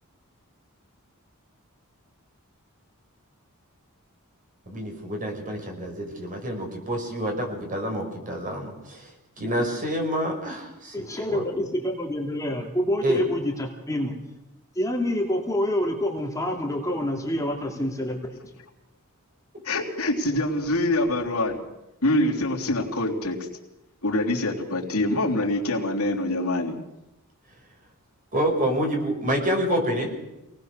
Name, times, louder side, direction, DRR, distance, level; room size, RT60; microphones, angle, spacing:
voice 1, 4.7-9.1 9.4-11.4 13.0-13.2 28.3-30.1, equal, 40° right, 2 dB, 5.6 m, -27 dB
voice 2, 10.9-14.1 14.8-18.4, left 1 dB, 15° left, 1 dB, 2.6 m, -27 dB
voice 3, 19.6-21.6 22.0-23.5 24.0-26.8, left 1 dB, 75° left, -1 dB, 3.4 m, -25 dB
27.0 x 19.0 x 6.7 m, 0.94 s
head